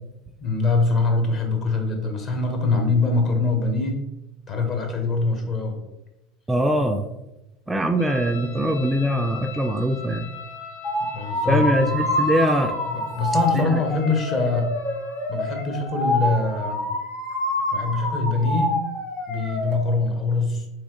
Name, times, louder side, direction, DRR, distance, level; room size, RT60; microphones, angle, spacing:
voice 1, 0.4-4.0 4.5-5.8 11.0-12.0 12.9-14.7 15.3-16.8 17.7-18.8 19.3-20.6, left 3 dB, 45° left, 3 dB, 0.9 m, -23 dB
voice 2, 6.5-7.1 7.7-10.3 11.5-12.8 13.5-13.8, equal, 10° right, 5 dB, 0.3 m, -22 dB
sound 1, 8.0-15.9, left 5 dB, 85° left, 0.5 m, -41 dB
sound 2, 10.8-19.7, left 1 dB, 65° left, 1.3 m, -27 dB
3.6 x 3.2 x 2.9 m, 0.93 s
hypercardioid pair, 85°, 0 cm